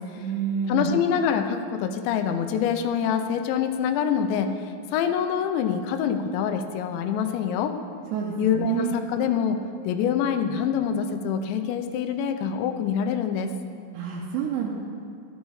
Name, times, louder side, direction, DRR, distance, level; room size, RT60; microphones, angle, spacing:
voice 1, 0.2-0.9 8.1-8.9 13.9-14.7, right 7 dB, 80° right, -2 dB, 3.0 m, -28 dB
voice 2, 0.7-4.5 4.9-7.7 8.4-9.6 9.9-13.5, left 8 dB, 80° left, 8 dB, 2.9 m, -25 dB
12.5 x 12.0 x 4.8 m, 2.3 s
omnidirectional pair, 5.2 m